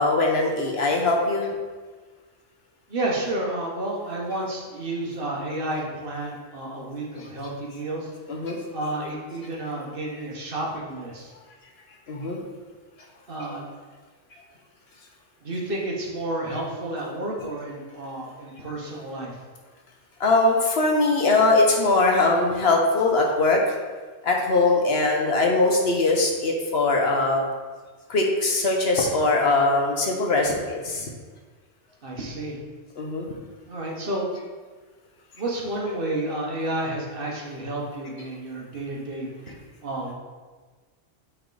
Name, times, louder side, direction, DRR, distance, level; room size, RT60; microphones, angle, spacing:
voice 1, 0.0-1.5 8.3-8.6 12.1-12.4 20.2-23.6 24.2-27.4 28.1-31.1 33.0-33.3, left 2 dB, 60° left, 0 dB, 1.1 m, -21 dB
voice 2, 2.9-8.1 8.7-11.3 13.3-13.6 15.4-19.4 32.0-32.6 33.7-34.3 35.4-39.3 39.8-40.1, right 1 dB, 50° right, -2 dB, 1.2 m, -31 dB
7.9 x 3.5 x 3.9 m, 1.4 s
omnidirectional pair, 1.3 m